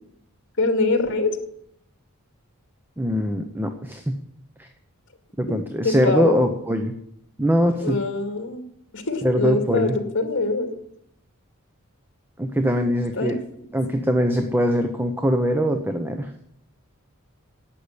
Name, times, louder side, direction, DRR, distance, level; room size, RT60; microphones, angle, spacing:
voice 1, 0.6-1.4 5.5-5.6 5.8-6.4 7.8-8.7 8.9-10.7 13.1-13.4, left 2 dB, 60° left, 5 dB, 2.2 m, -24 dB
voice 2, 3.0-4.2 4.6-4.7 5.4-6.9 7.4-8.0 9.2-10.0 12.4-13.4 13.7-16.3, equal, 10° right, 6 dB, 0.8 m, -22 dB
11.5 x 8.6 x 8.4 m, 0.74 s
head